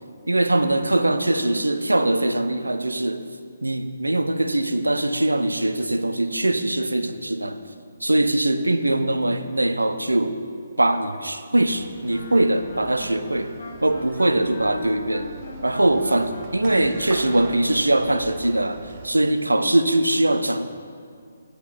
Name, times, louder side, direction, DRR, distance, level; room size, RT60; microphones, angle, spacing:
voice 1, 0.3-3.2 3.6-7.6 8.0-10.4 10.8-13.5 13.8-15.3 15.6-20.7, right 1 dB, 85° right, 10 dB, 0.5 m, -22 dB
sound 1, 11.6-19.1, right 4 dB, 35° right, 0.7 m, -42 dB
Wind instrument woodwind instrument, 12.1-17.8, left 2 dB, 55° left, 1.3 m, -39 dB
6.5 x 5.4 x 6.5 m, 2.3 s
figure-of-eight pair, 140°, 0 cm